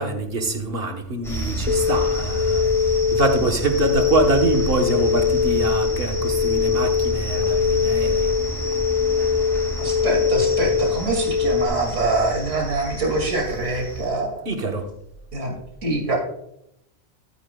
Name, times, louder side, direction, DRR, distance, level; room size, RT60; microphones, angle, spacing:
voice 1, 0.0-8.3 14.5-14.9, right 2 dB, 55° right, 4 dB, 1.3 m, -25 dB
sound 1, 1.2-14.1, right 1 dB, ahead, 2.5 m, -30 dB
sound 2, 1.7-11.7, left 6 dB, 40° left, 0.5 m, -22 dB
voice 2, 9.8-14.4 15.3-15.6 15.8-16.2, right 2 dB, 85° right, 1 dB, 2.6 m, -24 dB
13.5 x 8.7 x 2.2 m, 0.81 s
omnidirectional pair, 1.2 m